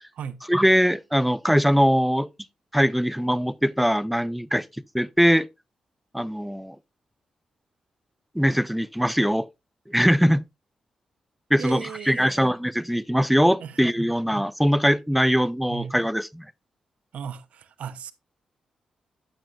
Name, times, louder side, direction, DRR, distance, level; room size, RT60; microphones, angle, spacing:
voice 1, 0.5-2.3 2.7-4.7 4.9-5.5 6.1-6.8 8.4-9.5 9.9-10.4 11.5-16.5, equal, ahead, 0.3 m, -21 dB
voice 2, 11.6-12.5 13.6-13.8 15.7-16.0 17.1-18.1, right 8 dB, 80° right, 0.8 m, -36 dB
9.0 x 8.8 x 2.4 m
cardioid pair, 95°, 2 cm